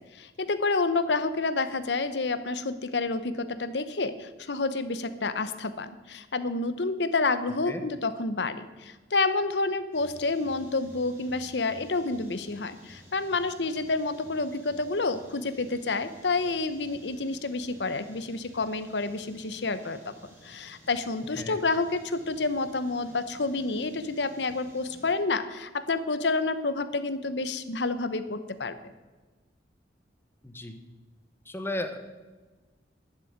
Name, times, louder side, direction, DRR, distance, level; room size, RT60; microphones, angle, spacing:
voice 1, 0.0-20.1 20.4-28.7, left 3 dB, 75° left, 12 dB, 1.0 m, -29 dB
sound 1, 9.9-25.1, equal, 15° right, 2.9 m, -53 dB
voice 2, 30.4-30.8 31.5-32.2, left 1 dB, 15° left, 7 dB, 1.1 m, -35 dB
11.0 x 7.5 x 8.8 m, 1.3 s
head